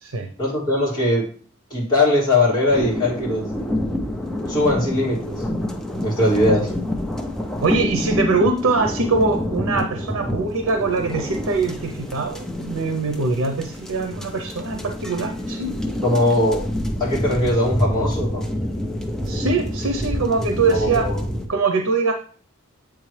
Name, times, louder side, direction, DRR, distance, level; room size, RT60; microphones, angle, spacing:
voice 1, 0.4-1.3 1.7-3.7 4.5-5.4 6.0-6.7 16.0-16.7 17.0-18.4 20.7-21.2, left 1 dB, 20° left, -6 dB, 2.5 m, -20 dB
sound 1, 2.7-21.5, left 1 dB, ahead, 0.5 m, -27 dB
voice 2, 7.6-15.7 19.2-21.1 21.5-22.1, right 3 dB, 80° right, 5 dB, 0.7 m, -22 dB
8.2 x 3.6 x 3.2 m, 0.43 s
head